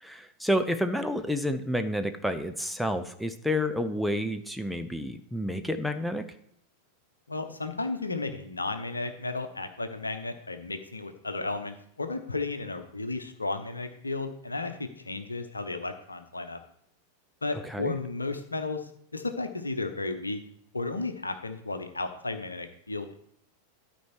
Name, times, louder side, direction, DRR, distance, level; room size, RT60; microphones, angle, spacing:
voice 1, 0.0-6.3 17.6-17.9, equal, ahead, 8 dB, 0.6 m, -29 dB
voice 2, 7.3-16.6 17.4-20.4 20.7-23.2, left 3 dB, 80° left, 8 dB, 0.9 m, -34 dB
12.5 x 4.4 x 4.6 m, 0.69 s
figure-of-eight pair, 90°, 0 cm